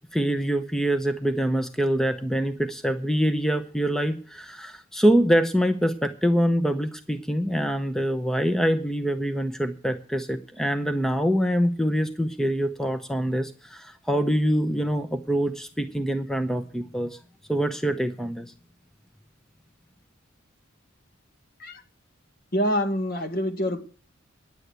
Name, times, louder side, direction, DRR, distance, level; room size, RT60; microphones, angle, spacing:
voice 1, 0.1-17.2 17.5-18.5, equal, ahead, 0.6 m, -25 dB
voice 2, 22.5-23.9, equal, 50° left, 1.6 m, -26 dB
10.0 x 8.4 x 8.1 m
head